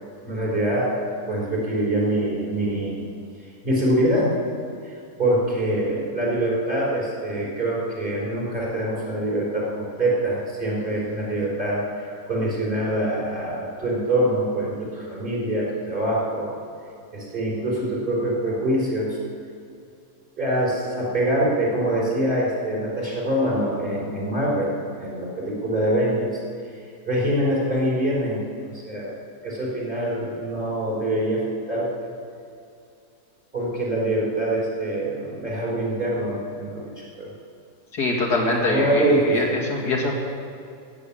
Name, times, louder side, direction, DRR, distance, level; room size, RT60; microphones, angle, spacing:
voice 1, 0.2-3.0 3.6-4.3 4.8-4.9 5.2-11.9 12.3-16.5 17.1-19.2 20.4-24.7 25.0-26.4 27.1-28.4 28.8-29.1 29.4-32.1 33.5-37.3 38.7-39.5, right 1 dB, 30° right, -5 dB, 4.4 m, -24 dB
voice 2, 37.9-40.2, left 2 dB, 90° left, -1 dB, 2.9 m, -23 dB
16.5 x 7.5 x 8.7 m, 2.5 s
omnidirectional pair, 1.7 m